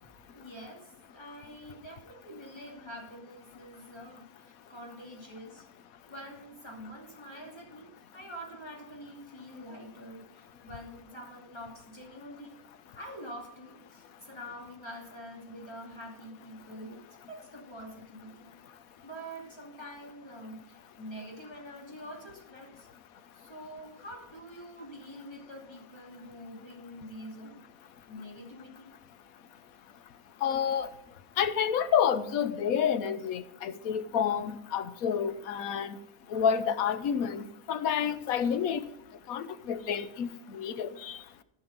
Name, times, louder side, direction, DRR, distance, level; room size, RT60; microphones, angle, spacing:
voice 1, 0.0-5.7 6.1-12.6 12.9-18.5 19.0-22.9 23.3-28.9, equal, 20° left, -1 dB, 2.6 m, -46 dB
voice 2, 30.4-30.9 31.4-36.0 36.3-38.8 39.3-41.2, left 8 dB, 85° left, 12 dB, 1.2 m, -29 dB
14.0 x 5.7 x 5.2 m, 0.85 s
omnidirectional pair, 1.5 m